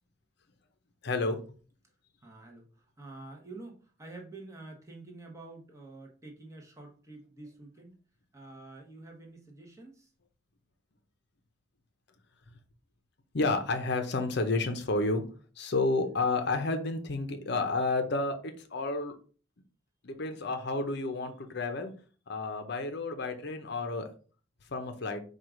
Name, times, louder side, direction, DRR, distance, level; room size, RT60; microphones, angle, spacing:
voice 1, 1.0-1.4 13.3-15.2 15.6-19.2 20.0-21.9 22.3-24.1 24.7-25.2, left 3 dB, 55° left, 0.6 m, -30 dB
voice 2, 2.2-8.0 8.3-10.1, right 2 dB, 15° right, 0.8 m, -48 dB
4.5 x 2.4 x 4.9 m
head